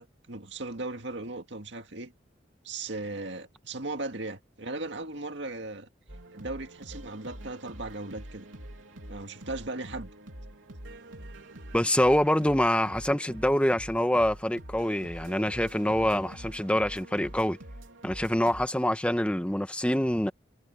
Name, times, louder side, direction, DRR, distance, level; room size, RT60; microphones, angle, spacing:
voice 1, 0.0-2.1 2.6-5.9 6.3-8.5 9.1-10.1, right 2 dB, 65° right, 2.1 m, -37 dB
sound 1, 6.1-18.7, right 1 dB, 85° right, 3.5 m, -45 dB
voice 2, 11.7-17.6 18.0-20.3, left 1 dB, 5° left, 1.2 m, -25 dB
head